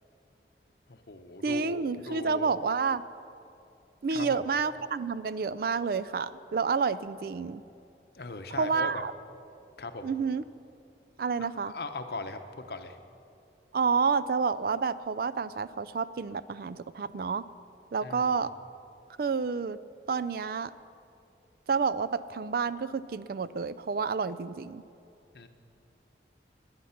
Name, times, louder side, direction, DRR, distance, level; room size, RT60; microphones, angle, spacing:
voice 1, 0.9-2.5 4.1-4.4 8.1-9.0 9.8-10.1 11.4-13.0 18.0-18.3 25.3-25.5, left 2 dB, 60° left, 7 dB, 0.9 m, -39 dB
voice 2, 1.4-3.0 4.0-7.6 8.5-9.1 10.0-10.4 11.2-11.7 13.7-17.4 17.9-18.5 19.2-19.8 20.1-20.7 21.7-24.8, right 5 dB, 55° right, 15 dB, 0.4 m, -29 dB
17.5 x 10.5 x 5.8 m, 2.6 s
head